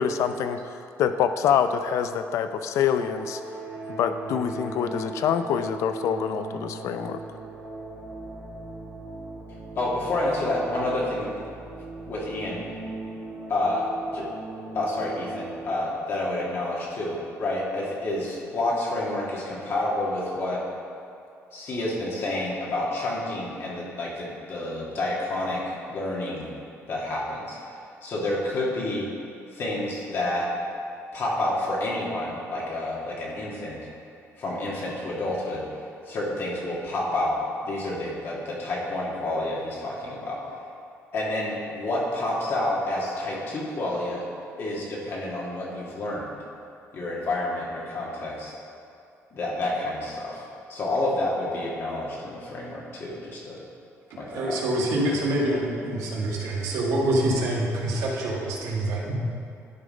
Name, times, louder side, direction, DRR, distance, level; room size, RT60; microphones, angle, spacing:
voice 1, 0.0-3.4 3.9-7.2, left 8 dB, 70° left, 10 dB, 0.4 m, -26 dB
sound 1, 2.7-15.7, right 3 dB, 65° right, 1.9 m, -38 dB
voice 2, 9.7-11.3 12.1-12.6 13.5-14.3 14.7-20.6 21.5-26.5 26.9-29.1 29.5-30.5 31.1-33.8 34.4-40.4 41.1-44.3 44.6-46.3 46.9-48.6 49.3-53.6 54.2-54.6, left 1 dB, 50° left, -4 dB, 1.7 m, -29 dB
voice 3, 54.3-59.2, right 1 dB, 85° right, -3 dB, 1.6 m, -26 dB
11.0 x 3.8 x 5.1 m, 2.6 s
cardioid pair, 130°, 5 cm